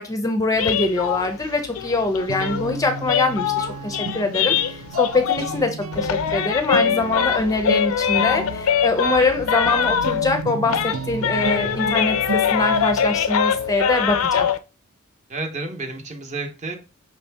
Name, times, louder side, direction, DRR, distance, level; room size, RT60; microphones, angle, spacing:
voice 1, 0.0-14.5, left 3 dB, 15° left, 6 dB, 0.4 m, -23 dB
sound 1, 0.5-5.7 5.9-10.4 10.7-14.6, left 8 dB, 80° left, 0.4 m, -23 dB
Guitar, 1.9-13.2, right 4 dB, 75° right, 0.4 m, -33 dB
voice 2, 15.3-16.8, right 3 dB, 35° right, 4 dB, 0.7 m, -31 dB
5.5 x 2.7 x 3.4 m, 0.31 s
head